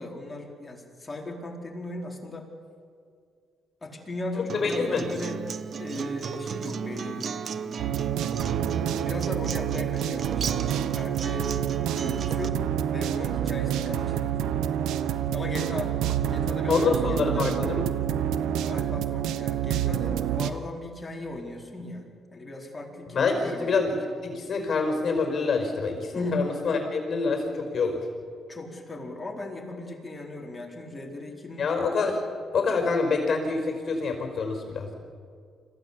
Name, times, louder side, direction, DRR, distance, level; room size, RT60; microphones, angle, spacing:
voice 1, 0.0-2.5 3.8-5.4 5.8-7.8 9.0-14.4 15.3-16.0 16.2-17.5 18.6-22.1 22.3-23.8 26.1-26.8 28.5-31.7 32.1-32.2, left 2 dB, 20° left, 0 dB, 4.4 m, -37 dB
Acoustic guitar, 4.5-12.5, right 6 dB, 50° right, 1.0 m, -34 dB
voice 2, 4.6-5.0 16.7-17.9 23.1-28.0 31.6-32.1 32.5-34.9, left 4 dB, 50° left, 4 dB, 5.1 m, -26 dB
sound 1, 7.8-20.5, right 10 dB, 85° right, 1.0 m, -28 dB
26.0 x 15.5 x 8.6 m, 2.2 s
cardioid pair, 90°, 0 cm